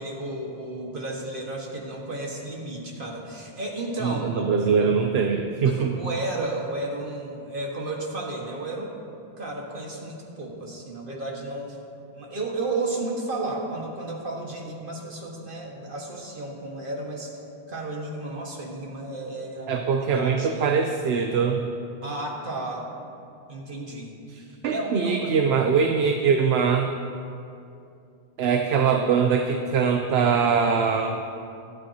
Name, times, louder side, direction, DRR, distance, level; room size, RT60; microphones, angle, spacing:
voice 1, 0.0-4.4 4.8-4.9 5.6-9.0 9.4-11.8 12.1-17.3 17.7-20.6 22.0-22.9 23.5-24.2 24.7-25.3, right 2 dB, 55° right, -2 dB, 1.8 m, -33 dB
voice 2, 4.0-6.0 19.7-21.6 24.3-26.9 28.4-31.2, right 6 dB, 70° right, 4 dB, 0.9 m, -22 dB
23.0 x 8.8 x 2.9 m, 2.5 s
omnidirectional pair, 1.1 m